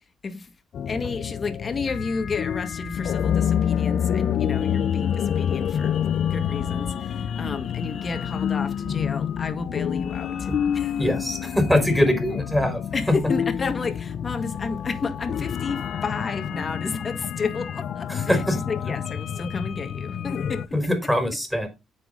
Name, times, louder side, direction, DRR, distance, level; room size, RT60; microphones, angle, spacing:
sound 1, 0.7-20.7, left 8 dB, 65° left, 0.9 m, -28 dB
voice 1, 0.9-11.0 12.9-21.1, left 4 dB, 35° left, 2.0 m, -32 dB
voice 2, 11.0-12.8 18.1-18.6 20.7-21.7, left 1 dB, ahead, 4.5 m, -22 dB
9.7 x 7.7 x 3.9 m
cardioid pair, 90°, 0 cm